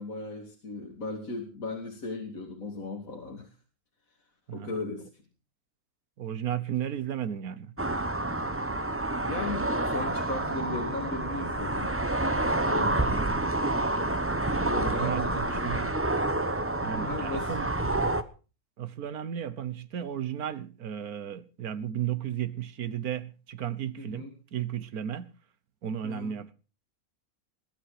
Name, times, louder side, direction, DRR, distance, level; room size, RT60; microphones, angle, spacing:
voice 1, 0.0-3.5 4.5-5.1 9.1-12.0 12.7-13.2 14.5-15.9 16.9-17.6 24.0-24.3 26.0-26.3, left 2 dB, 70° left, 2.8 m, -37 dB
voice 2, 6.2-7.7 13.1-13.4 14.8-15.9 16.8-18.2 18.8-25.3 25.8-26.5, right 10 dB, 90° right, 1.6 m, -34 dB
sound 1, 7.8-18.2, right 2 dB, 10° right, 0.8 m, -28 dB
20.5 x 11.0 x 4.9 m
omnidirectional pair, 1.5 m